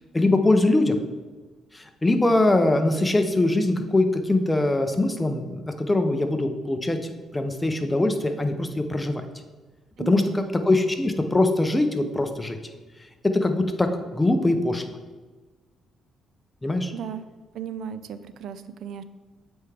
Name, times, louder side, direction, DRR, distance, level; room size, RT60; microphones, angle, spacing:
voice 1, 0.1-1.0 1.7-9.2 10.1-12.6 13.3-13.9 14.1-14.8 16.6-16.9, left 2 dB, 15° left, 7 dB, 0.6 m, -22 dB
voice 2, 10.0-10.5 16.9-17.3 17.5-19.0, right 8 dB, 75° right, 12 dB, 0.3 m, -35 dB
8.0 x 3.5 x 3.4 m, 1.3 s
cardioid pair, 90°, 0 cm